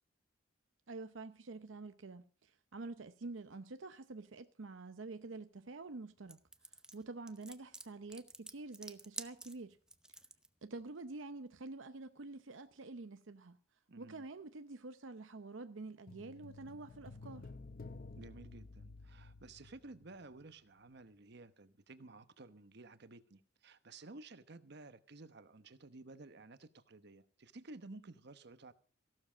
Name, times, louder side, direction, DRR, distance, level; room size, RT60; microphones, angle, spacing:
voice 1, 0.9-6.4 6.9-9.8 10.6-13.6 14.0-17.5, right 3 dB, 80° right, 0.7 m, -48 dB
sound 1, 6.3-10.5, right 1 dB, 5° right, 0.8 m, -49 dB
voice 2, 13.9-14.2 18.2-28.7, right 2 dB, 60° right, 1.0 m, -54 dB
sound 2, 16.1-20.5 20.8-20.9, left 3 dB, 50° left, 0.6 m, -52 dB
15.5 x 12.5 x 5.1 m
head